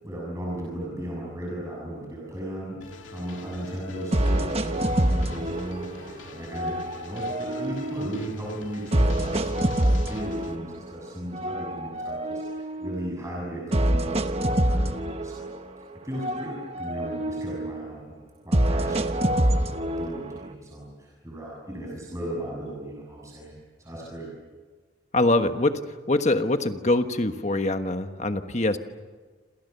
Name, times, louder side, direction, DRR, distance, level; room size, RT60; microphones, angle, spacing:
voice 1, 0.0-2.8 3.1-15.5 16.0-18.2 18.4-24.3, right 1 dB, 15° right, -3 dB, 7.0 m, -36 dB
sound 1, 2.8-10.6, left 3 dB, 85° left, 2.5 m, -45 dB
sound 2, 3.4-3.5 4.1-6.1 6.5-8.3 8.9-10.9 11.3-13.1 13.7-15.9 16.1-17.9 18.5-20.5, right 1 dB, 30° right, 1.1 m, -26 dB
voice 2, 25.1-25.7 26.1-28.8, left 2 dB, 35° left, 7 dB, 1.3 m, -23 dB
28.5 x 27.5 x 6.9 m, 1.4 s
head